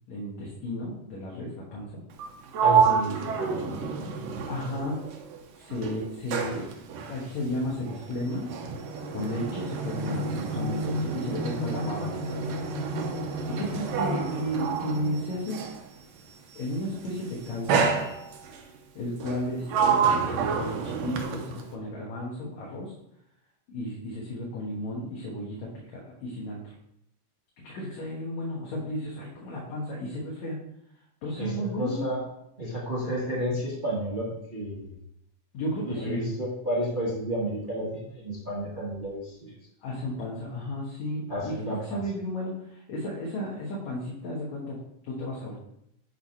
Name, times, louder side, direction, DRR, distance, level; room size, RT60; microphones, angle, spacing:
voice 1, 0.1-1.9 2.9-3.2 4.5-5.0 5.6-6.7 7.1-8.5 9.1-12.4 13.5-15.6 16.6-17.9 19.0-22.9 23.7-26.7 27.6-30.6 31.2-32.1 35.5-36.2 39.8-45.6, left 1 dB, 65° left, -4 dB, 2.5 m, -33 dB
Sliding door, 2.1-5.4 5.7-15.9 16.8-17.1 17.7-18.6 19.2-21.7, right 5 dB, 70° right, 1.8 m, -28 dB
voice 2, 3.2-3.8 31.4-32.2 32.6-34.9 35.8-39.5 41.3-42.0, equal, 35° right, -6 dB, 0.7 m, -31 dB
10.5 x 3.5 x 4.4 m, 0.77 s
omnidirectional pair, 3.7 m